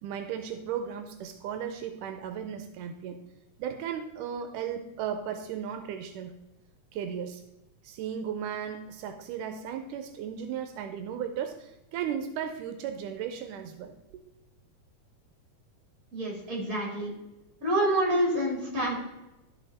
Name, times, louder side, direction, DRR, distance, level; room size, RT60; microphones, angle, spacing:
voice 1, 0.0-3.2 3.6-6.3 6.9-7.4 7.8-14.2, right 8 dB, 85° right, 7 dB, 2.2 m, -35 dB
voice 2, 16.1-17.1 17.6-19.0, right 1 dB, 25° right, -3 dB, 3.9 m, -27 dB
12.0 x 5.6 x 4.2 m, 0.97 s
omnidirectional pair, 3.6 m